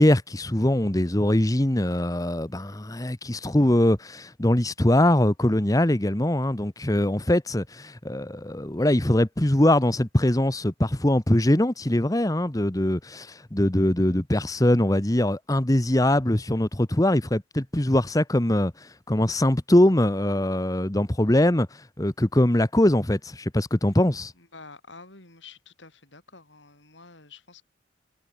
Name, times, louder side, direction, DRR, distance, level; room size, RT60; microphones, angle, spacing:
voice 1, 0.0-21.7 22.0-24.3, left 1 dB, 20° left, 1.1 m, -22 dB
voice 2, 24.4-27.6, left 4 dB, 80° left, 6.5 m, -48 dB
head